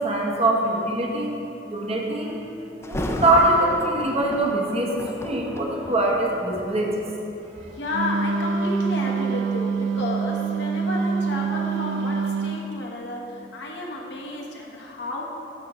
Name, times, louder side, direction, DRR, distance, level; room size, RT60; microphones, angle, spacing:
voice 1, 0.0-1.4 1.7-2.4 2.8-7.0, right 1 dB, 35° right, -1 dB, 0.9 m, -23 dB
Thunder, 2.8-7.8 8.5-8.7 9.3-12.1 12.5-12.6, left 1 dB, 15° left, 0.3 m, -35 dB
voice 2, 7.8-15.2, left 1 dB, 70° left, -1 dB, 1.0 m, -32 dB
Wind instrument woodwind instrument, 7.9-12.6, right 5 dB, 85° right, 0.5 m, -25 dB
12.5 x 5.1 x 3.0 m, 2.8 s
head